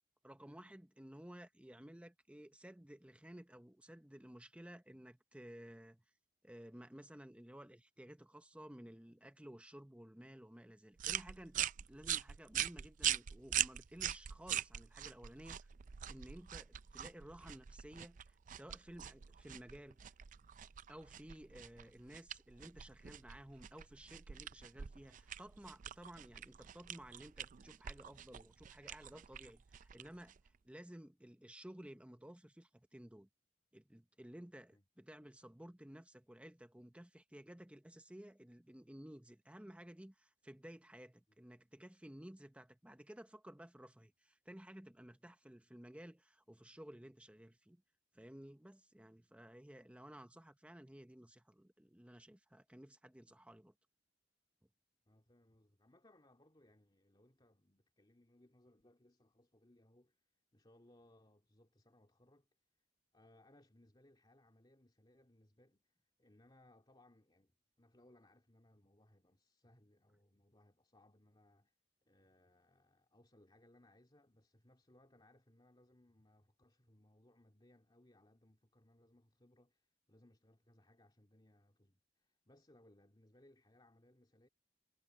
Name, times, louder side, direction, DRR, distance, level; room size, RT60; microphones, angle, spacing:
voice 1, 0.2-6.0 6.4-15.7 16.1-20.1 20.9-33.3 33.7-47.8 48.1-53.7, right 1 dB, 5° right, 0.8 m, -55 dB
sound 1, 11.0-30.5, right 11 dB, 45° right, 0.4 m, -43 dB
voice 2, 55.1-62.5 63.1-71.7 72.0-84.5, left 1 dB, 25° left, 2.2 m, -68 dB
head